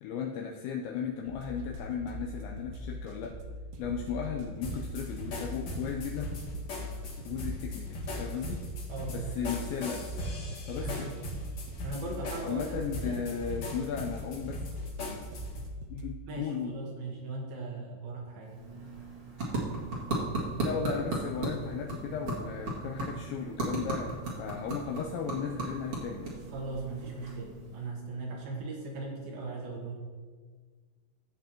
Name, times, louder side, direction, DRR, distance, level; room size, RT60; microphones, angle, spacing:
voice 1, 0.0-3.4 3.8-6.3 7.2-8.7 9.1-10.1 10.7-11.2 12.4-14.7 15.9-16.8 20.6-26.3, left 6 dB, 85° left, 0 dB, 2.6 m, -36 dB
sound 1, 1.3-16.0, left 1 dB, 90° right, 3.5 m, -41 dB
sound 2, 4.6-15.7, left 1 dB, 65° left, 1.7 m, -40 dB
voice 2, 8.9-9.3 10.8-11.1 11.8-12.7 13.0-13.2 16.3-18.9 26.5-30.0, right 3 dB, 70° right, -1 dB, 2.4 m, -39 dB
sound 3, 18.4-27.9, right 2 dB, 50° right, 1.5 m, -36 dB
16.0 x 7.8 x 2.9 m, 1.6 s
omnidirectional pair, 5.9 m